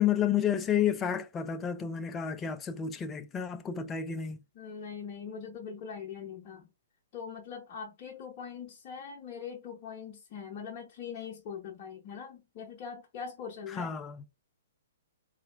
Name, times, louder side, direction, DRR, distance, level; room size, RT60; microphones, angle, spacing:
voice 1, 0.0-4.4 13.8-14.2, left 9 dB, 20° left, 0.5 m, -30 dB
voice 2, 4.5-6.7 7.1-14.0, left 6 dB, 40° left, 0.8 m, -42 dB
4.1 x 2.4 x 2.3 m
figure-of-eight pair, 120°, 0 cm